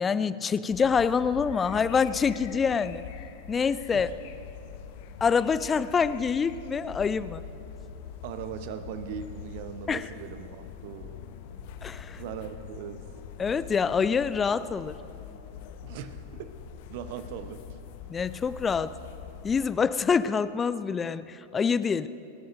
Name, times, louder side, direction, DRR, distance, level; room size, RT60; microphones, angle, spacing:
voice 1, 0.0-3.0 3.5-4.1 5.2-7.4 9.9-10.1 11.8-12.2 13.4-15.0 18.1-18.9 19.4-22.1, left 6 dB, 20° left, 15 dB, 0.4 m, -26 dB
sound 1, 0.7-19.6, left 8 dB, 50° left, 0.8 m, -44 dB
voice 2, 8.2-11.2 12.2-13.0 15.8-16.5 16.9-17.7, right 8 dB, 50° right, 11 dB, 0.9 m, -39 dB
28.0 x 13.0 x 2.7 m, 2.7 s
figure-of-eight pair, 90°, 0 cm